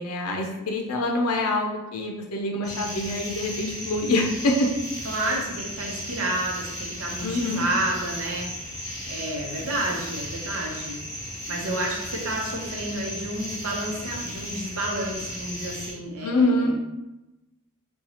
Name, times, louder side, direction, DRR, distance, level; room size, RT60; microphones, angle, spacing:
voice 1, 0.0-4.7 7.2-7.7 16.2-16.8, left 2 dB, 85° left, 1 dB, 0.5 m, -25 dB
sound 1, 2.6-15.9, equal, 15° left, 0.9 m, -35 dB
voice 2, 5.0-8.5 9.1-11.0 11.5-16.8, right 1 dB, 65° right, -1 dB, 0.8 m, -30 dB
2.8 x 2.3 x 4.0 m, 1.0 s
head